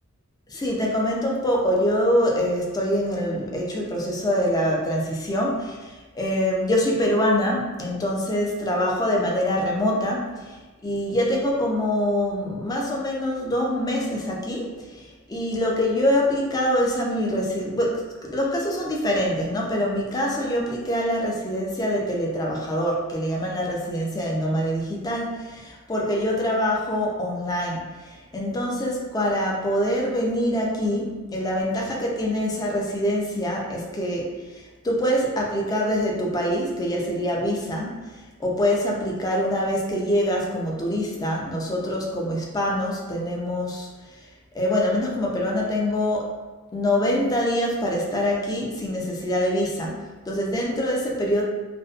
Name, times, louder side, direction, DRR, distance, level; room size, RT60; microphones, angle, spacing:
voice 1, 0.5-10.6 10.8-43.9 44.5-46.3 46.7-50.0 50.3-51.4, equal, 20° left, -2 dB, 0.3 m, -25 dB
2.5 x 2.1 x 2.3 m, 1.3 s
head